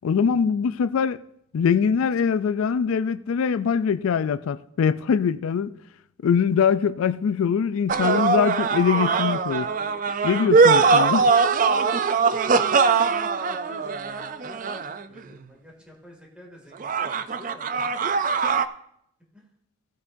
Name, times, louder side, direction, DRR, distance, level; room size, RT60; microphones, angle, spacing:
voice 1, 0.0-1.2 1.5-5.7 6.2-9.7 10.2-11.3, left 6 dB, 85° left, 0.4 m, -23 dB
sound 1, 7.9-15.2 16.8-18.7, right 5 dB, 40° right, 0.4 m, -21 dB
voice 2, 13.3-14.8 15.1-18.1 19.3-19.4, left 1 dB, 5° right, 2.2 m, -48 dB
16.5 x 8.2 x 2.6 m
head